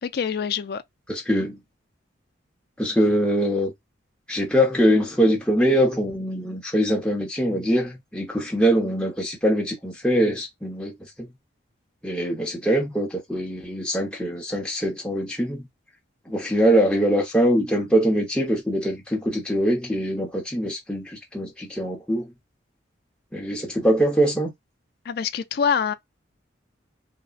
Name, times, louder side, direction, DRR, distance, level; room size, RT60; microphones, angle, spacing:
voice 1, 0.0-0.8 25.1-25.9, left 7 dB, 50° left, 0.3 m, -25 dB
voice 2, 1.1-1.6 2.8-3.7 4.3-11.3 12.0-15.7 16.3-22.3 23.3-24.5, equal, 5° left, 0.8 m, -23 dB
3.6 x 2.1 x 2.3 m
head